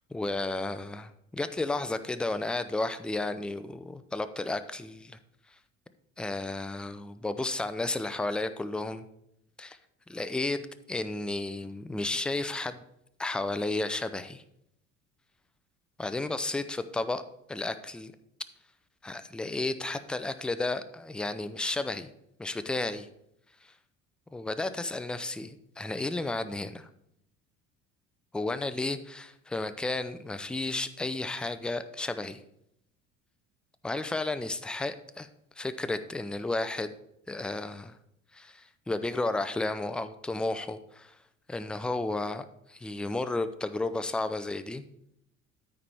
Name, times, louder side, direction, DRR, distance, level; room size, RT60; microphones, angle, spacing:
voice 1, 0.1-5.2 6.2-9.0 9.6-9.8 10.1-10.6 10.9-12.8 13.2-14.4 16.0-17.2 17.5-18.1 19.0-22.1 22.4-23.1 24.3-26.9 28.3-32.4 33.8-35.3 35.6-36.9 37.3-37.9 38.3-41.2 41.5-44.8, left 2 dB, 5° left, 11 dB, 0.4 m, -32 dB
13.0 x 4.5 x 3.5 m, 0.77 s
figure-of-eight pair, 60°, 39 cm